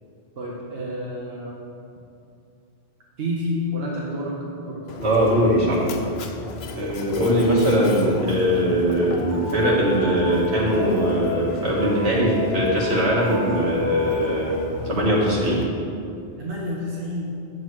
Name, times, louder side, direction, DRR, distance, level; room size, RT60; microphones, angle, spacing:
voice 1, 0.4-1.6 3.2-5.0 6.4-6.7 16.4-17.3, left 1 dB, 70° right, -4 dB, 1.2 m, -30 dB
Mechanisms, 4.9-15.7, left 5 dB, 80° left, 0.8 m, -36 dB
voice 2, 5.0-5.8 6.7-14.6 14.8-15.6, equal, 85° right, -5 dB, 1.9 m, -21 dB
sound 1, 9.2-14.5, left 4 dB, 35° left, 1.3 m, -34 dB
8.9 x 7.4 x 3.2 m, 2.6 s
omnidirectional pair, 1.1 m